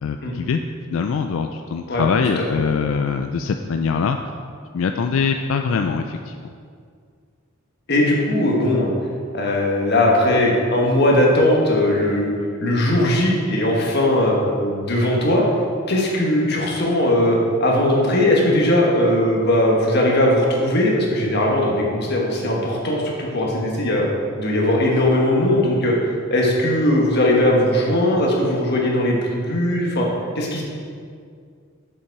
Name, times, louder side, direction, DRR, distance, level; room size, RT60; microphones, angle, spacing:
voice 1, 0.0-0.6 0.9-4.2 4.7-6.5, left 5 dB, 90° left, 6 dB, 0.3 m, -23 dB
voice 2, 7.9-8.9 9.3-12.3 12.6-15.4 15.9-24.1 24.4-25.9 26.3-30.1 30.3-30.6, left 1 dB, 55° left, -1 dB, 1.4 m, -19 dB
6.9 x 5.5 x 4.7 m, 2.2 s
head